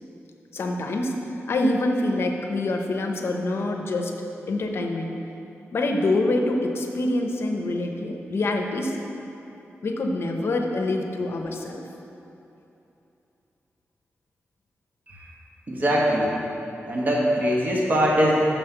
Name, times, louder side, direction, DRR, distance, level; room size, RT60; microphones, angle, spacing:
voice 1, 0.5-1.1 1.5-4.1 4.5-5.1 5.7-9.0 9.8-11.8, left 2 dB, 55° left, 3 dB, 0.7 m, -25 dB
voice 2, 15.7-16.3 16.8-18.4, equal, 35° right, -4 dB, 1.3 m, -22 dB
6.1 x 5.5 x 6.8 m, 2.9 s
wide cardioid pair, 150°, 5 cm